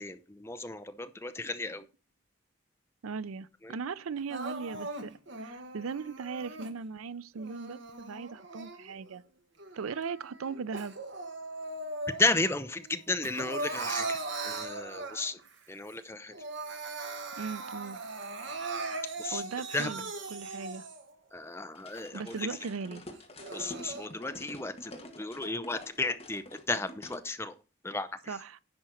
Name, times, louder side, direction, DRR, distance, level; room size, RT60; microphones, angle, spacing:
voice 1, 0.0-1.8 3.6-3.7 12.2-14.2 14.4-15.4 15.7-16.3 19.2-19.4 19.7-19.9 21.3-22.5 23.5-27.5 27.8-28.1, left 2 dB, 10° left, 0.6 m, -33 dB
voice 2, 3.0-9.2 9.7-11.0 17.4-18.0 18.9-20.9 22.1-23.0 23.4-23.5 28.3-28.6, right 5 dB, 85° right, 0.5 m, -38 dB
Crying sobbing, 4.3-6.7 7.4-9.1 9.6-12.5 12.8-15.5 15.9-16.0 16.3-21.1 21.7-21.8 22.3-22.4 23.2-24.1, right 3 dB, 60° right, 1.4 m, -39 dB
sound 1, 21.7-27.2, left 1 dB, 30° left, 1.5 m, -47 dB
10.5 x 4.4 x 6.3 m
head